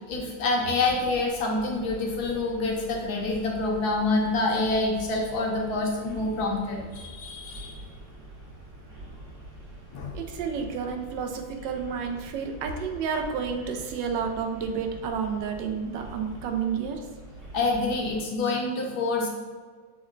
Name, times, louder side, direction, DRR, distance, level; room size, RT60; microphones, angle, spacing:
voice 1, 0.1-7.8 9.9-10.1 17.5-19.3, left 2 dB, 70° left, 0 dB, 1.1 m, -27 dB
sound 1, 0.8-18.2, right 1 dB, 65° right, 2.1 m, -45 dB
voice 2, 10.1-17.0, right 6 dB, 90° right, 4 dB, 1.3 m, -30 dB
6.1 x 2.1 x 3.7 m, 1.5 s
omnidirectional pair, 1.9 m